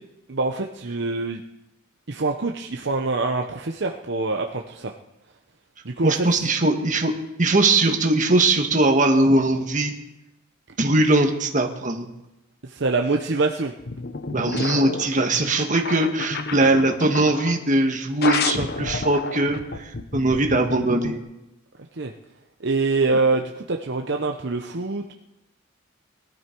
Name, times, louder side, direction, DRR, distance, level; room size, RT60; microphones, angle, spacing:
voice 1, 0.3-1.4 2.1-4.9 5.8-6.3 12.6-13.7 21.9-22.1 22.6-25.1, right 3 dB, 60° right, 3 dB, 0.8 m, -25 dB
voice 2, 6.0-9.9 10.8-12.1 14.3-21.2, right 2 dB, 40° right, 4 dB, 1.6 m, -21 dB
sound 1, 13.8-17.6 18.2-21.2, left 4 dB, 50° left, 0.8 m, -30 dB
20.0 x 12.5 x 4.6 m, 0.92 s
head